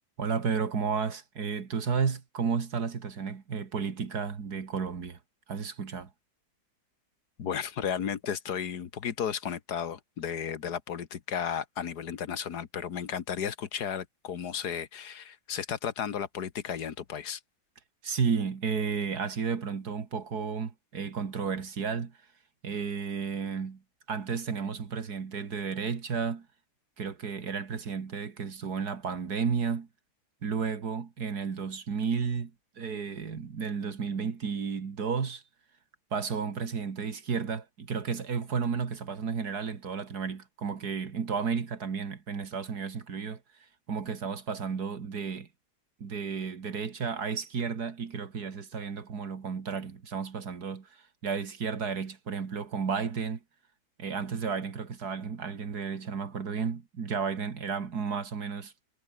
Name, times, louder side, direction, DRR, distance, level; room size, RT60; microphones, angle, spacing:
voice 1, 0.2-5.2 5.5-6.1 18.0-22.2 22.6-23.8 24.1-26.5 27.0-29.9 30.4-35.4 36.1-43.4 43.9-45.5 46.0-53.4 54.0-58.7, right 6 dB, 75° right, 2.5 m, -32 dB
voice 2, 7.4-17.4, left 8 dB, 75° left, 1.9 m, -34 dB
omnidirectional pair, 1.7 m